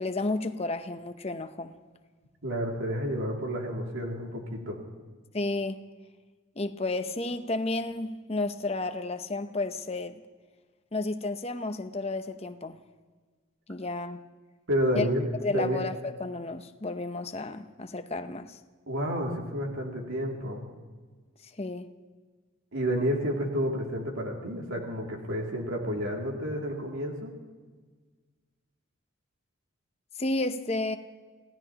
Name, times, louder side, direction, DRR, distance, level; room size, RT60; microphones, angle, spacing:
voice 1, 0.0-1.7 5.3-5.9 6.6-10.2 10.9-12.8 13.7-14.2 14.9-15.1 15.4-18.6 21.6-21.9 30.2-31.0, left 2 dB, 30° left, 8 dB, 0.8 m, -32 dB
voice 2, 2.4-4.8 14.7-15.3 15.5-15.8 18.9-20.6 22.7-27.3, equal, 75° right, -1 dB, 2.7 m, -30 dB
27.5 x 17.0 x 3.0 m, 1.4 s
head